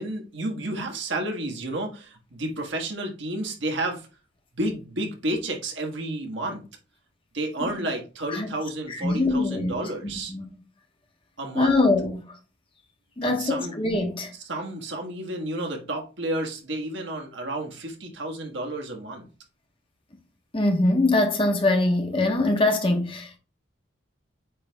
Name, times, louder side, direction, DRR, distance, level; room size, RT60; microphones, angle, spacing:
voice 1, 0.0-4.1 4.5-6.6 7.3-10.3 11.4-11.8 13.2-13.7 14.3-19.3, right 1 dB, 65° right, 1.5 m, -31 dB
voice 2, 9.0-10.5 11.5-12.2 13.2-14.3 20.5-23.4, left 2 dB, 25° left, 0.9 m, -23 dB
8.4 x 3.2 x 3.4 m
head